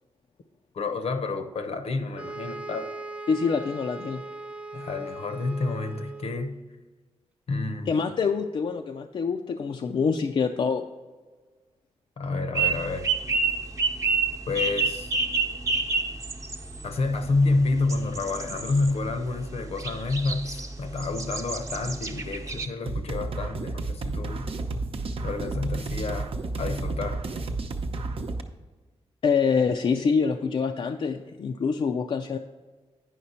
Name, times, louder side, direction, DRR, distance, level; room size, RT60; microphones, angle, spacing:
voice 1, 0.7-3.0 4.7-6.6 7.5-8.0 12.2-13.1 14.5-15.1 16.8-24.4 25.2-26.3 26.6-27.2, left 3 dB, 70° left, 8 dB, 0.8 m, -29 dB
sound 1, 2.2-6.6, right 3 dB, 10° right, 0.3 m, -39 dB
voice 2, 3.3-4.2 7.9-10.9 29.2-32.4, left 5 dB, 55° left, 4 dB, 0.4 m, -25 dB
sound 2, 12.5-22.7, right 4 dB, 30° right, 0.8 m, -29 dB
sound 3, 22.9-28.4, right 3 dB, 60° right, 0.7 m, -31 dB
9.4 x 5.8 x 4.2 m, 1.3 s
wide cardioid pair, 100°, 11 cm